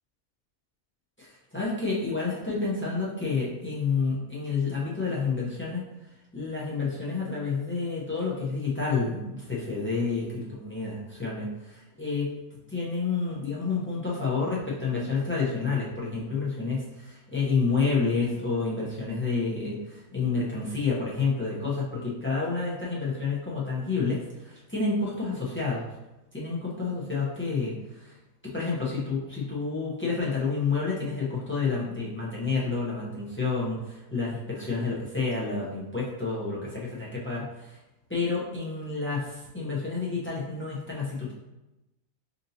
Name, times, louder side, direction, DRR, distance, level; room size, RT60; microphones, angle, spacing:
voice 1, 1.2-5.8 6.3-12.3 12.7-25.9 26.3-28.1 28.4-37.5 38.1-41.3, left 4 dB, 15° left, -6 dB, 0.4 m, -29 dB
5.1 x 2.7 x 2.7 m, 0.97 s
omnidirectional pair, 1.5 m